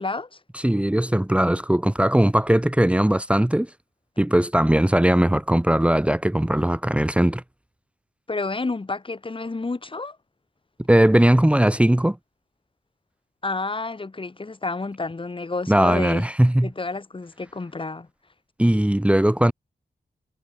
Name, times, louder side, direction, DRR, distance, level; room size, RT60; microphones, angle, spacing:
voice 1, 0.0-0.4 8.3-10.2 13.4-16.3 16.6-18.1, left 3 dB, 30° left, 5.5 m, -30 dB
voice 2, 0.5-3.7 4.2-7.4 10.9-12.2 15.7-16.7 18.6-19.5, right 1 dB, 5° right, 1.6 m, -19 dB
wide cardioid pair, 150°, 18 cm